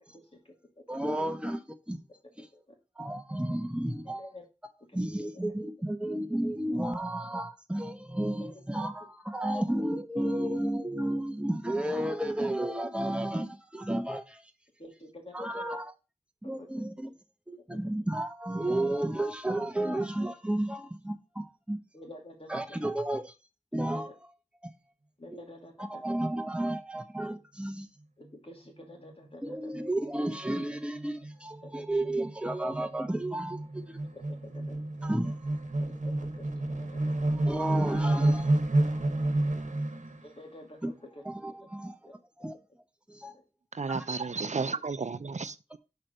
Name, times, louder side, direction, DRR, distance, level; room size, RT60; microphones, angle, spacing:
voice 1, 0.9-2.0 2.4-2.5 3.0-4.3 4.6-14.5 15.3-15.9 16.4-17.1 17.5-21.8 22.5-23.3 23.7-24.3 24.6-24.7 25.3-25.4 25.8-27.9 29.4-33.6 33.9-34.0 35.0-35.4 37.3-38.5 40.8-40.9 41.2-42.1 42.4-42.6 43.1-43.4 43.9-44.0, right 1 dB, 10° right, 0.9 m, -32 dB
voice 2, 4.1-4.4 8.4-8.5 14.8-15.6 16.6-16.7 21.9-22.5 25.2-26.1 28.2-29.6 31.7-31.8 34.1-34.8 35.8-36.5 36.8-37.3 40.2-40.8 44.5-44.8, left 1 dB, 50° left, 2.4 m, -48 dB
sound 1, 29.5-29.8 30.2-30.3 30.5-40.2, right 1 dB, 85° right, 1.0 m, -30 dB
voice 3, 43.7-45.8, right 4 dB, 70° right, 0.5 m, -33 dB
6.4 x 4.5 x 5.2 m
wide cardioid pair, 45°, 12 cm